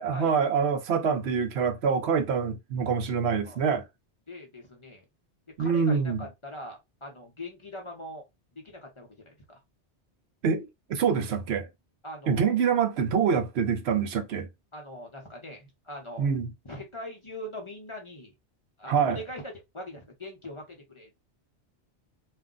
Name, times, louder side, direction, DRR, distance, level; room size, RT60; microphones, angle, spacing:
voice 1, 0.0-3.8 5.6-6.3 10.4-11.7 12.3-14.5 16.2-16.5 18.9-19.2, right 6 dB, 70° right, 0.8 m, -25 dB
voice 2, 4.3-5.0 5.6-8.2 8.5-9.6 12.0-12.5 14.7-16.3 16.6-18.3 18.8-21.2, left 1 dB, 30° left, 0.7 m, -42 dB
2.5 x 2.1 x 3.7 m
omnidirectional pair, 1.2 m